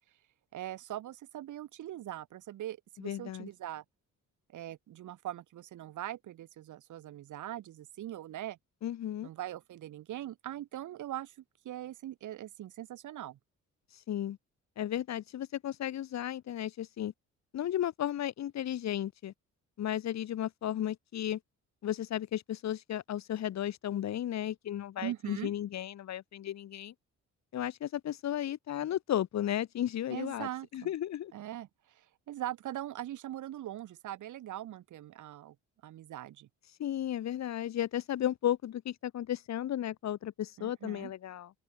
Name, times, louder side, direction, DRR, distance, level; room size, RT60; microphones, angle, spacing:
voice 1, 0.5-3.8 4.5-8.6 9.2-11.3 11.6-13.4 25.0-25.5 30.1-30.9 31.3-35.5 35.8-36.5 40.6-41.1, right 13 dB, 75° right, 4.6 m, -41 dB
voice 2, 3.0-3.5 8.8-9.3 13.9-14.4 14.8-17.1 17.5-19.3 19.8-21.4 21.8-26.9 27.5-31.3 36.8-41.5, left 11 dB, 60° left, 1.5 m, -34 dB
open air
cardioid pair, 90°, 30 cm